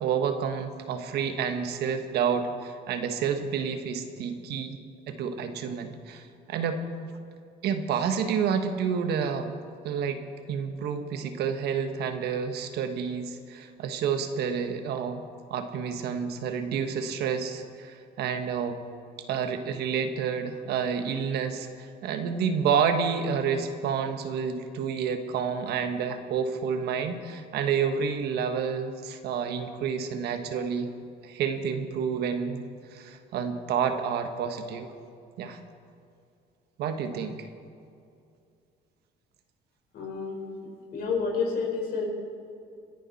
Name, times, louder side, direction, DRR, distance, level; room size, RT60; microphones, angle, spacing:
voice 1, 0.0-4.8 5.1-6.8 7.6-9.5 9.8-10.2 10.5-15.2 15.5-18.8 19.3-30.9 31.2-32.7 32.9-34.9 35.4-35.6 36.8-37.5, right 6 dB, 75° right, 7 dB, 1.4 m, -29 dB
voice 2, 39.9-40.4 40.9-42.1, left 5 dB, 65° left, 0 dB, 4.6 m, -29 dB
25.5 x 11.0 x 4.2 m, 2.5 s
cardioid pair, 110°, 17 cm